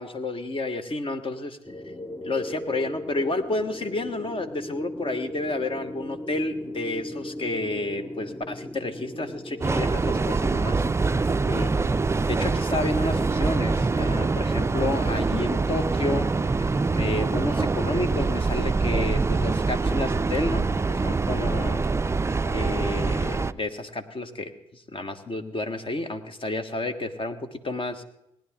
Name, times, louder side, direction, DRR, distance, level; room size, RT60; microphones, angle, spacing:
voice 1, 0.0-1.6 2.2-10.8 11.5-11.7 12.2-21.8 22.5-28.0, left 2 dB, 40° left, 8 dB, 1.5 m, -30 dB
sound 1, 1.6-10.2, left 1 dB, 15° left, 0.8 m, -37 dB
Train, 9.6-23.5, right 3 dB, 20° right, 0.4 m, -24 dB
19.0 x 10.5 x 3.7 m, 0.84 s
hypercardioid pair, 45°, 14 cm